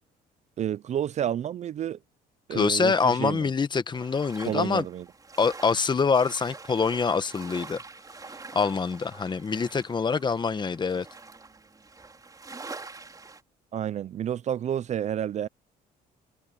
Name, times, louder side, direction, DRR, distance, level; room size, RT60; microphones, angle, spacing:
voice 1, 0.6-2.0 2.5-3.5 4.4-5.1 13.7-15.5, right 10 dB, 45° right, 0.5 m, -30 dB
voice 2, 2.5-4.9 5.4-7.8 8.5-11.1, left 5 dB, 25° left, 1.2 m, -25 dB
sound 1, 3.9-13.4, right 3 dB, 20° right, 4.7 m, -45 dB
cardioid pair, 110°, 17 cm